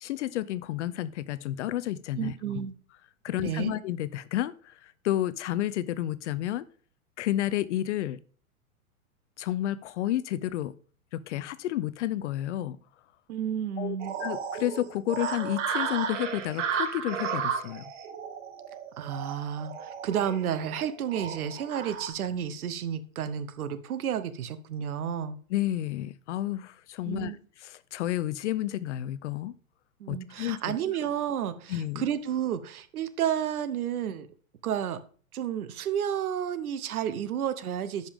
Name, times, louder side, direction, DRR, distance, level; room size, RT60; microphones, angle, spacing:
voice 1, 0.0-2.3 3.2-6.6 7.2-8.2 9.4-10.7 11.1-12.8 13.8-17.8 25.5-27.3 27.6-29.5 30.1-30.8 31.7-32.1, left 13 dB, 55° left, 16 dB, 0.5 m, -31 dB
voice 2, 2.2-2.7 3.4-3.7 13.3-14.2 19.0-25.4 27.0-27.4 30.0-34.3 34.6-35.0 35.3-38.1, right 9 dB, 85° right, 13 dB, 0.9 m, -31 dB
sound 1, 14.0-22.1, right 7 dB, 55° right, 1.3 m, -34 dB
10.0 x 5.2 x 3.5 m, 0.43 s
hypercardioid pair, 135°, 42 cm